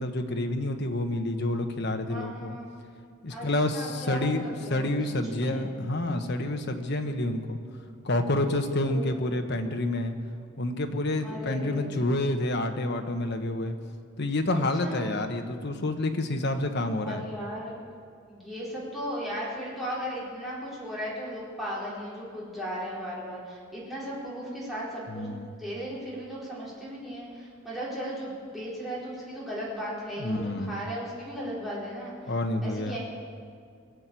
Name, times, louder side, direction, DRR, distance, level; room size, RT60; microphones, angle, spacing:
voice 1, 0.0-2.6 3.2-4.4 4.7-7.6 8.0-10.1 10.6-13.7 14.2-17.2 25.1-25.5 30.2-30.8 32.3-33.0, left 1 dB, 55° left, 5 dB, 1.2 m, -28 dB
voice 2, 2.1-2.7 3.3-4.9 5.3-5.7 8.9-9.3 11.2-12.1 14.5-15.1 17.0-17.8 18.3-25.3 25.5-32.3 32.6-33.0, equal, ahead, -8 dB, 4.3 m, -36 dB
21.0 x 7.7 x 8.4 m, 2.2 s
head